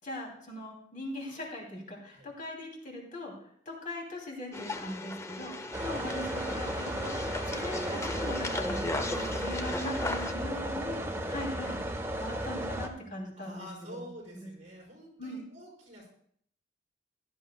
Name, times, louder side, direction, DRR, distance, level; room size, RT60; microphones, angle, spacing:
voice 1, 0.0-3.3 3.6-11.8 12.2-14.0 14.3-14.5 15.2-15.4, left 1 dB, 45° left, -1 dB, 2.8 m, -40 dB
sound 1, 4.5-10.3, left 2 dB, 15° left, 0.6 m, -37 dB
sound 2, 5.7-12.9, right 1 dB, 15° right, 0.9 m, -34 dB
voice 2, 9.1-10.5 13.4-16.1, equal, 45° right, -2 dB, 4.9 m, -49 dB
16.0 x 11.0 x 2.3 m, 0.62 s
head